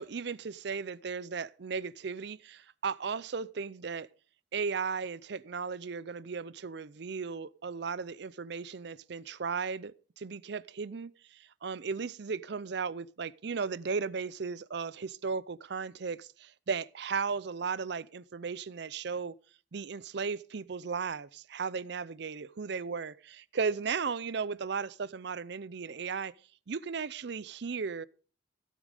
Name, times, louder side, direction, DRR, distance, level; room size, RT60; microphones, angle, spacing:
voice 1, 0.0-4.1 4.5-19.3 19.7-26.3 26.7-28.1, right 5 dB, 60° right, 0.5 m, -36 dB
16.5 x 7.4 x 5.1 m
head